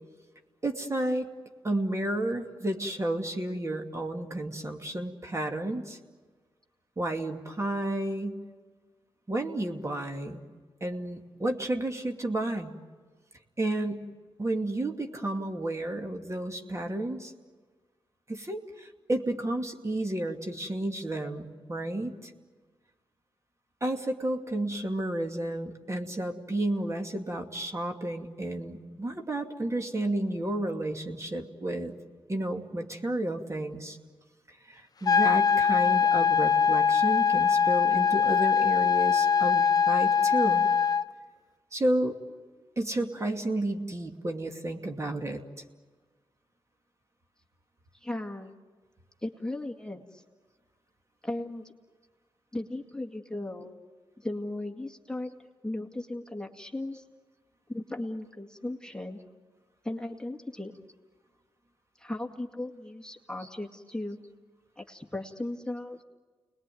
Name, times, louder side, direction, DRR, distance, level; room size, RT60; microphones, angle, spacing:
voice 1, 0.6-1.3 1.6-6.0 7.0-8.4 9.3-10.4 10.8-12.7 13.6-14.1 14.4-17.3 18.3-22.3 23.8-31.9 32.3-34.0 34.7-40.7 41.7-42.2 42.8-45.4, right 1 dB, 30° right, 3 dB, 2.6 m, -31 dB
sound 1, 35.1-41.0, left 6 dB, 40° left, 0.8 m, -22 dB
voice 2, 48.0-48.6 49.2-50.2 51.2-51.7 52.5-53.8 54.2-55.4 55.6-57.0 57.7-59.2 59.8-60.7 62.0-64.2 64.8-66.0, left 1 dB, 10° left, 2 dB, 2.1 m, -36 dB
30.0 x 21.0 x 9.3 m, 1.5 s
cardioid pair, 65°, 10 cm